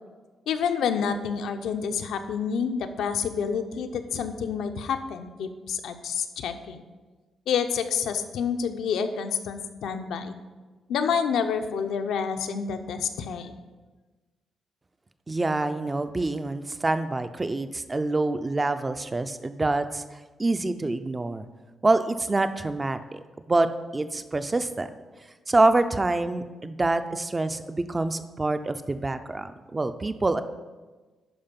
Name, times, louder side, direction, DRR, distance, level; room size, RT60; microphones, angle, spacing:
voice 1, 0.5-6.8 7.5-10.3 10.9-13.5, left 6 dB, 80° left, 7 dB, 0.7 m, -28 dB
voice 2, 15.3-21.5 21.8-23.7 23.9-24.9 25.5-30.4, right 2 dB, 15° right, 10 dB, 0.4 m, -26 dB
11.0 x 4.7 x 5.2 m, 1.3 s
wide cardioid pair, 170°, 0 cm